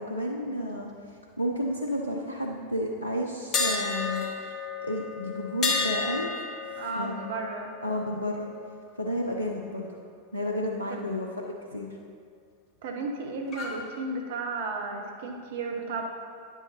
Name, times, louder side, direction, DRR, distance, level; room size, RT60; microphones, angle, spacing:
voice 1, 0.0-4.3 4.8-6.3 6.7-7.4 7.8-8.5 9.0-9.9 10.3-11.9, left 1 dB, 85° left, 0 dB, 0.5 m, -32 dB
sound 1, 3.5-9.4 9.7-10.0 13.5-13.8, left 4 dB, 35° left, 1.2 m, -32 dB
voice 2, 6.8-7.7 10.9-11.0 12.8-16.0, right 3 dB, 55° right, 2 dB, 1.0 m, -33 dB
9.6 x 8.0 x 2.9 m, 2.2 s
figure-of-eight pair, 90°, 0 cm